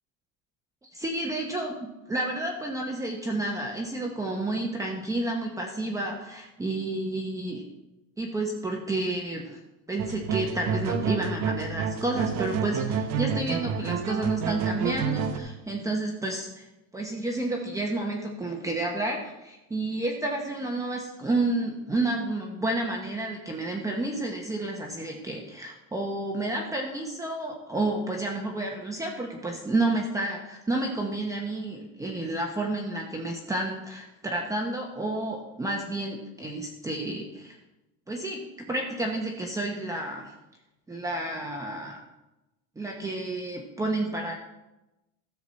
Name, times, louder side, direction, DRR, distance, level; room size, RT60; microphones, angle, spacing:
voice 1, 0.9-7.6 8.2-9.6 9.9-16.6 16.9-37.6 38.1-40.3 40.9-42.0 42.8-44.3, right 2 dB, 10° right, 0 dB, 1.0 m, -30 dB
sound 1, 10.0-15.4, right 6 dB, 45° right, 1.0 m, -29 dB
13.5 x 7.1 x 4.1 m, 0.98 s
cardioid pair, 145°, 37 cm